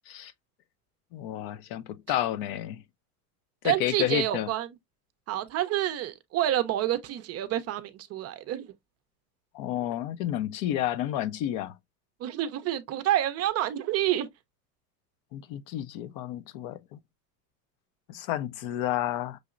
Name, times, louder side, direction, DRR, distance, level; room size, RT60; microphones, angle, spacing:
voice 1, 1.1-2.8 3.6-4.5 9.5-11.7 15.3-17.0 18.1-19.4, left 12 dB, 45° left, 0.6 m, -31 dB
voice 2, 3.6-4.7 5.3-8.7 12.2-14.3, right 12 dB, 30° right, 0.5 m, -28 dB
6.3 x 2.8 x 2.4 m
hypercardioid pair, 90°, 48 cm